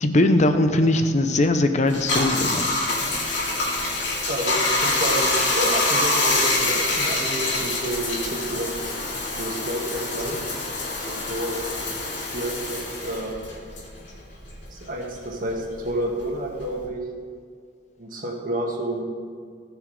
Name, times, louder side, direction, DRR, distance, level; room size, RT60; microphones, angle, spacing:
voice 1, 0.0-2.7, left 1 dB, 40° left, 7 dB, 0.7 m, -20 dB
Bathtub (filling or washing), 1.9-14.7 15.0-16.9, left 2 dB, 80° left, 2.7 m, -26 dB
voice 2, 4.3-8.8 9.4-10.4 11.0-11.7 12.3-13.4 14.7-17.0 18.0-19.0, right 1 dB, 50° right, -1 dB, 1.8 m, -29 dB
18.5 x 6.3 x 3.3 m, 2.1 s
head